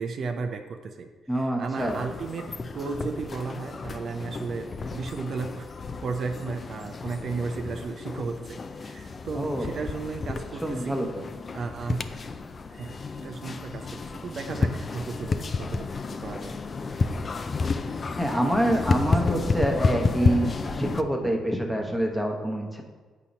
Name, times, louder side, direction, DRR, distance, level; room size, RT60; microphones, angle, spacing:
voice 1, 0.0-1.1 1.6-5.7 6.0-11.0 11.5-12.0 12.7-15.9 16.2-16.6 16.9-17.1 18.6-19.0, right 4 dB, 55° right, 6 dB, 0.5 m, -34 dB
voice 2, 1.3-2.0 9.3-9.9 10.6-11.2 18.2-22.8, right 1 dB, ahead, 1 dB, 1.0 m, -26 dB
sound 1, 1.8-21.0, left 4 dB, 35° left, 0.4 m, -31 dB
8.3 x 2.8 x 5.1 m, 1.4 s
cardioid pair, 90°, 0 cm